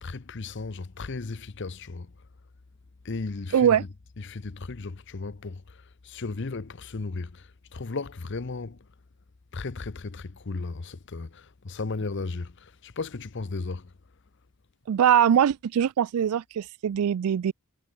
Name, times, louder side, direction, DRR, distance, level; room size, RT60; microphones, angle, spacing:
voice 1, 0.0-2.1 3.0-3.9 4.2-8.9 9.5-13.9, left 3 dB, 55° left, 0.7 m, -35 dB
voice 2, 3.5-3.8 14.9-17.5, right 9 dB, 85° right, 0.4 m, -22 dB
head